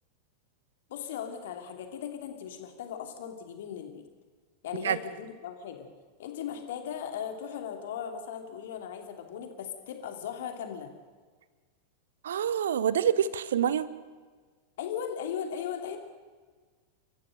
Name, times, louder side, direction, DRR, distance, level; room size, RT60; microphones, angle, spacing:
voice 1, 0.9-4.0 4.6-5.9 6.2-10.9 14.8-16.0, left 8 dB, 55° left, 5 dB, 2.9 m, -37 dB
voice 2, 12.2-13.9, right 9 dB, 65° right, 18 dB, 0.9 m, -26 dB
29.5 x 14.5 x 6.6 m, 1.5 s
figure-of-eight pair, 90°, 0 cm